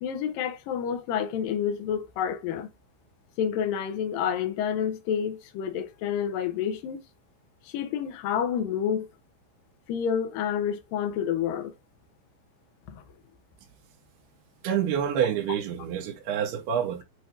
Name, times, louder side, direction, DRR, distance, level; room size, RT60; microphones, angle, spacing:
voice 1, 0.0-2.7 3.4-7.0 7.6-9.1 9.9-11.7 12.9-13.0, left 8 dB, 85° left, 2.0 m, -29 dB
voice 2, 14.6-17.0, right 9 dB, 85° right, 2.3 m, -27 dB
7.9 x 4.5 x 2.7 m
omnidirectional pair, 5.4 m